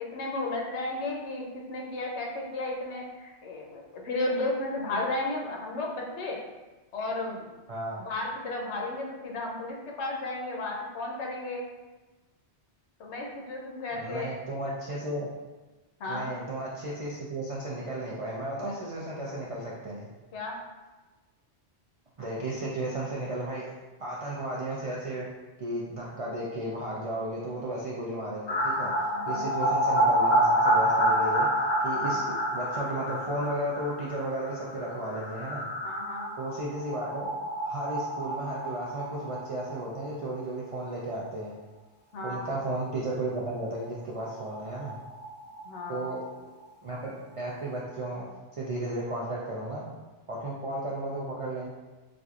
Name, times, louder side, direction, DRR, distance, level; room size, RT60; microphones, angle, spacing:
voice 1, 0.0-6.4 6.9-7.5 8.0-11.6 13.0-14.3 16.0-16.3 20.3-20.6 29.1-29.4 32.0-32.2 35.8-36.3 42.1-42.5 45.6-46.2, left 2 dB, 75° left, -1 dB, 1.0 m, -34 dB
voice 2, 7.7-8.0 13.9-15.3 16.1-20.1 22.2-23.7 24.0-25.2 25.6-28.9 29.3-31.5 31.8-35.7 36.4-37.3 37.6-41.6 42.2-45.0 45.9-46.2 46.8-48.2 48.5-49.8 50.3-51.7, right 1 dB, 55° right, -5 dB, 0.3 m, -34 dB
sound 1, 28.5-40.1 40.4-40.5 40.7-40.8 43.8-43.9 44.2-44.3 44.5-46.3 46.6-46.7, right 1 dB, 45° left, 0.7 m, -28 dB
4.3 x 2.5 x 2.4 m, 1.2 s
omnidirectional pair, 1.2 m